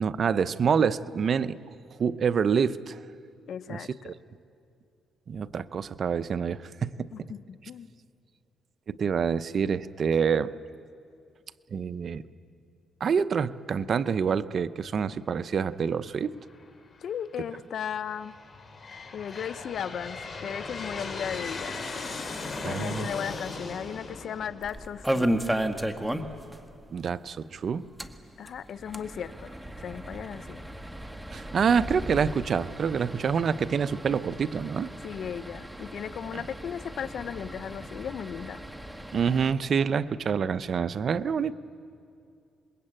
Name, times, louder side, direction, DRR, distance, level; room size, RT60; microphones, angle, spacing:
voice 1, 0.0-1.6 2.0-3.0 3.7-4.1 5.3-7.3 8.9-10.5 11.7-12.2 13.0-16.3 22.6-23.1 26.9-27.8 31.3-34.9 36.3-36.4 39.1-41.5, right 6 dB, 50° right, 14 dB, 0.7 m, -27 dB
voice 2, 3.5-4.1 7.1-7.9 17.0-18.3 19.1-21.8 22.6-25.4 28.4-29.5 29.8-30.6 35.0-38.6, left 8 dB, 60° left, 13 dB, 0.8 m, -36 dB
Aircraft, 16.5-17.1 17.8-25.3, left 3 dB, 40° left, 4.6 m, -38 dB
sound 1, 24.6-26.6 26.8-26.9 27.2-27.3 27.8-39.5, right 1 dB, 5° right, 1.5 m, -35 dB
27.0 x 21.5 x 8.9 m, 2.4 s
cardioid pair, 90°, 0 cm